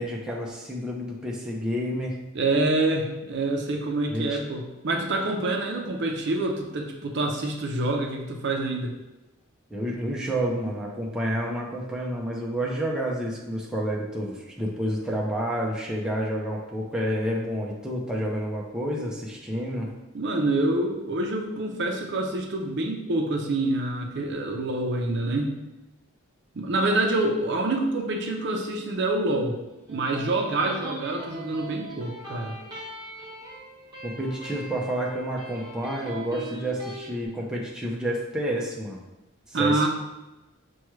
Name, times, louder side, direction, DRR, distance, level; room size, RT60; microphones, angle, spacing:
voice 1, 0.0-2.2 4.1-4.4 9.7-19.9 34.0-39.0 39.5-39.9, equal, 5° right, -3 dB, 0.5 m, -29 dB
voice 2, 2.3-8.9 20.1-25.6 26.5-29.6 29.9-32.6 39.5-39.9, right 2 dB, 60° right, 2 dB, 0.5 m, -26 dB
Electric guitar, 29.7-37.1, right 2 dB, 20° right, 1.3 m, -40 dB
5.9 x 2.3 x 3.1 m, 1.0 s
head